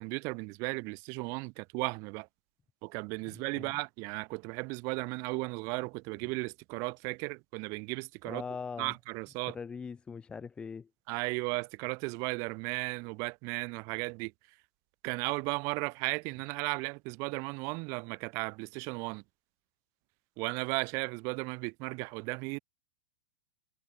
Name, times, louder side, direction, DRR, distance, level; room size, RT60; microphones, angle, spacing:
voice 1, 0.0-2.3 2.8-8.4 8.8-9.6 11.1-14.3 15.0-19.2 20.4-22.6, right 30 dB, 25° right, 0.6 m, -35 dB
voice 2, 3.3-3.7 8.3-8.9 9.5-10.9, left 5 dB, 10° left, 0.8 m, -41 dB
supercardioid pair, 170°, 12 cm